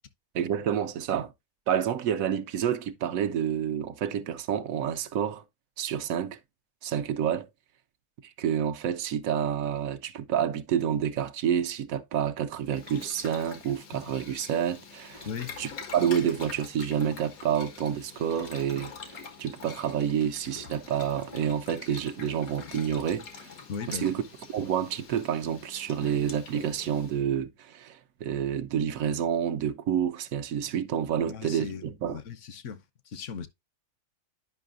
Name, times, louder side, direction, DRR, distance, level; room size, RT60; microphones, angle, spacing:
voice 1, 0.3-1.3 1.7-5.4 5.8-6.4 6.8-7.5 8.2-15.3 15.6-23.5 23.9-24.2 24.5-32.2, right 9 dB, 75° right, 1.1 m, -29 dB
Boiling, 12.6-27.2, left 6 dB, 85° left, 1.7 m, -45 dB
voice 2, 23.7-24.1 31.2-33.5, left 6 dB, 65° left, 1.0 m, -38 dB
9.4 x 5.5 x 2.4 m
omnidirectional pair, 1.5 m